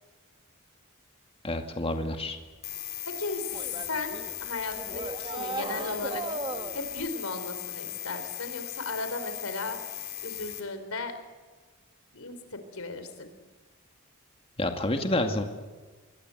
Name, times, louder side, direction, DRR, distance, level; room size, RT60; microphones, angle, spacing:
voice 1, 1.4-2.4 14.6-15.4, left 1 dB, 25° left, 5 dB, 2.2 m, -28 dB
sound 1, 2.6-10.6, left 12 dB, 45° left, 3.6 m, -38 dB
voice 2, 3.1-6.2 6.7-9.8 10.2-11.2 12.1-13.3, left 3 dB, 75° left, 9 dB, 4.0 m, -36 dB
sound 2, 3.5-7.1, right 3 dB, 25° right, 1.4 m, -37 dB
26.5 x 22.5 x 7.9 m, 1.3 s
head